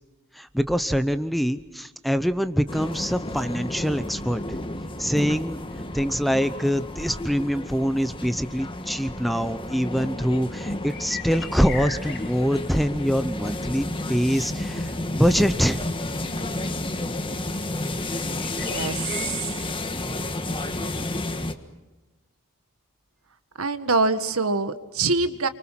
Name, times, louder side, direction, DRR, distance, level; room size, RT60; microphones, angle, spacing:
voice 1, 0.3-4.6 5.0-5.6 5.9-15.8, equal, ahead, 12 dB, 0.7 m, -24 dB
sound 1, 2.7-21.5, left 1 dB, 25° left, 1.5 m, -31 dB
sound 2, 10.5-19.4, left 5 dB, 55° left, 3.8 m, -42 dB
voice 2, 18.6-19.6 23.6-25.5, right 3 dB, 75° right, 10 dB, 1.6 m, -25 dB
30.0 x 24.0 x 5.9 m, 1.1 s
head